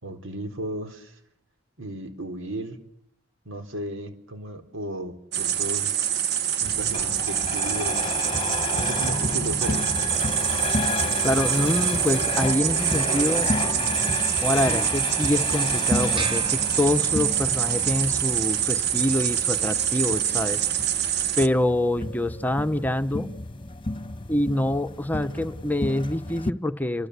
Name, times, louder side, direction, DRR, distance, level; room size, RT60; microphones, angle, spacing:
voice 1, 0.0-1.2 1.8-2.8 3.4-5.9 6.6-8.1 8.7-9.9, right 1 dB, 90° right, 7 dB, 4.1 m, -35 dB
sound 1, 5.3-21.5, right 10 dB, 55° right, 1.2 m, -25 dB
sound 2, 6.6-26.5, left 3 dB, 25° left, 1.3 m, -31 dB
voice 2, 11.2-13.5 14.4-20.6 21.4-23.3 24.3-27.1, left 1 dB, 10° left, 10 dB, 1.0 m, -25 dB
sound 3, 16.2-17.6, right 3 dB, 25° right, 1.3 m, -37 dB
27.5 x 25.5 x 8.3 m, 0.73 s
head